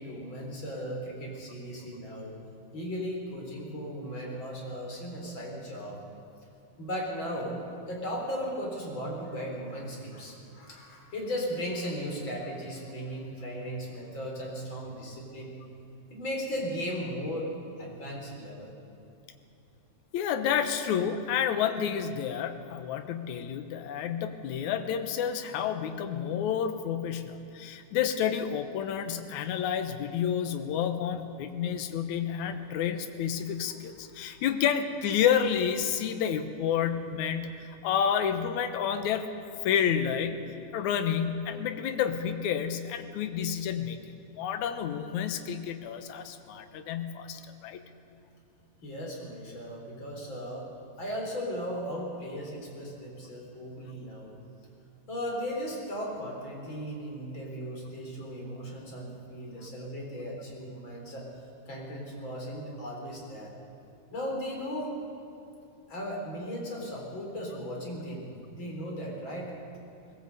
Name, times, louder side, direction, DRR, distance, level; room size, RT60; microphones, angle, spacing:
voice 1, 0.0-2.3 2.7-6.0 6.8-15.6 16.1-17.5 17.8-18.7 48.8-50.7 51.0-54.3 55.1-61.3 61.7-63.5 64.1-64.9 65.9-69.5, equal, 30° left, -1 dB, 4.3 m, -36 dB
voice 2, 20.1-39.3 39.6-40.4 40.7-47.8, left 8 dB, 70° left, 8 dB, 2.0 m, -30 dB
20.5 x 17.5 x 8.0 m, 2.8 s
omnidirectional pair, 4.4 m